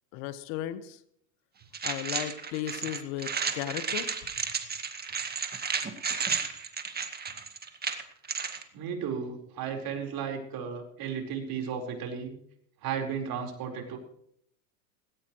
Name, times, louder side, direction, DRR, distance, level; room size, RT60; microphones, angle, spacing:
voice 1, 0.1-1.0 1.8-4.1, left 12 dB, 60° left, 11 dB, 1.7 m, -35 dB
sound 1, 1.7-8.6, right 6 dB, 20° right, 1.9 m, -33 dB
voice 2, 8.7-12.3 12.8-14.0, right 7 dB, 45° right, 3 dB, 4.6 m, -34 dB
18.5 x 17.5 x 3.2 m, 0.68 s
hypercardioid pair, 105°, 49 cm